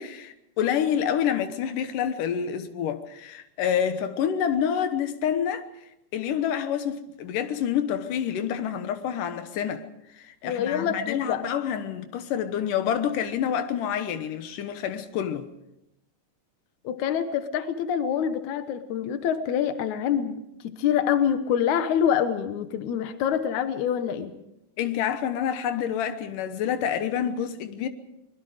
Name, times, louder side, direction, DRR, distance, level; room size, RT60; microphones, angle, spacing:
voice 1, 0.0-5.7 6.1-9.9 10.1-15.5 24.8-27.9, left 9 dB, 90° left, 2.7 m, -28 dB
voice 2, 10.4-11.4 16.8-20.4 20.6-24.3, left 8 dB, 70° left, 2.5 m, -26 dB
24.0 x 22.0 x 5.0 m
omnidirectional pair, 3.6 m